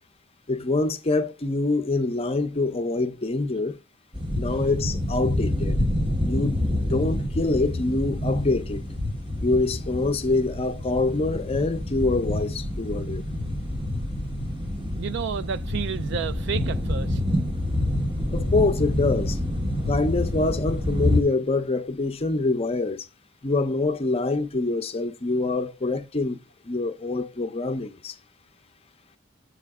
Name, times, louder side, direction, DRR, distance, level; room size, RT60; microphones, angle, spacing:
voice 1, 0.5-3.8 4.3-5.8 6.2-8.8 9.4-13.2 18.3-19.4 19.9-23.0 23.4-26.4 26.6-28.2, left 3 dB, 30° left, 0.6 m, -25 dB
sound 1, 4.1-21.2, left 1 dB, 25° right, 0.9 m, -27 dB
voice 2, 14.9-17.2, right 6 dB, 60° right, 0.3 m, -31 dB
7.7 x 3.2 x 4.8 m
head